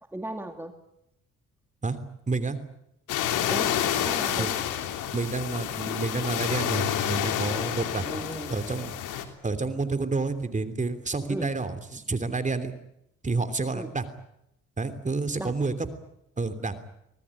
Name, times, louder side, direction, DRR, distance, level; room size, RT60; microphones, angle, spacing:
voice 1, 0.1-0.7 3.5-4.5 8.1-8.6 11.3-11.5 13.7-13.9 15.4-15.5, right 1 dB, 5° right, 5 dB, 2.4 m, -36 dB
voice 2, 2.3-2.6 4.4-4.5 5.1-8.1 8.5-8.9 9.4-12.7 13.2-14.1 14.8-15.7 16.4-16.9, right 3 dB, 25° right, 11 dB, 3.2 m, -29 dB
sound 1, 3.1-9.2, left 10 dB, 90° left, 3.3 m, -29 dB
25.5 x 19.0 x 9.9 m, 0.81 s
cardioid pair, 90°, 30 cm